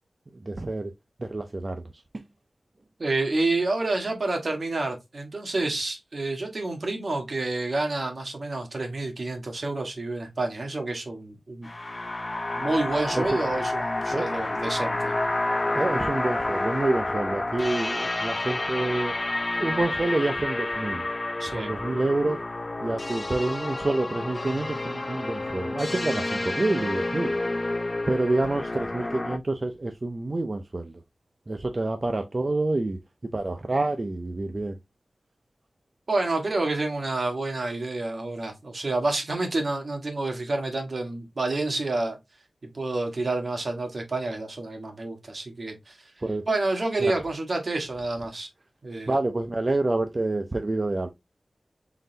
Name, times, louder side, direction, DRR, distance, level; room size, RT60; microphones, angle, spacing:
voice 1, 0.5-0.9 1.2-1.8 13.1-13.4 14.1-14.3 15.7-19.1 19.6-21.0 21.6-22.4 22.8-27.3 28.1-30.9 31.5-33.0 33.3-34.7 46.2-46.4 49.1-51.1, right 2 dB, 40° right, 0.5 m, -27 dB
voice 2, 3.0-11.7 12.6-15.1 21.4-21.7 36.1-42.2 42.7-46.1 46.5-48.5 48.8-49.2, right 2 dB, 55° right, 1.3 m, -29 dB
sound 1, 11.6-29.4, left 2 dB, 35° left, 0.4 m, -29 dB
3.9 x 3.8 x 2.7 m
wide cardioid pair, 90°, 0 cm